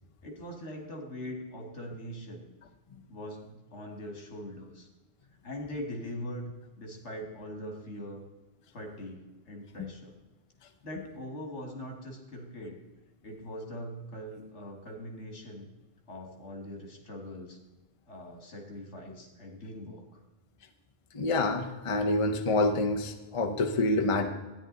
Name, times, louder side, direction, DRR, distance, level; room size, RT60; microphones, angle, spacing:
voice 1, 0.2-2.5 3.1-4.9 5.4-8.2 8.7-10.2 10.8-12.8 13.2-15.7 16.1-17.6 18.1-20.2, equal, 70° left, 2 dB, 2.3 m, -42 dB
voice 2, 21.1-24.3, left 2 dB, 30° left, 4 dB, 0.8 m, -27 dB
13.0 x 9.9 x 4.0 m, 1.1 s
omnidirectional pair, 1.2 m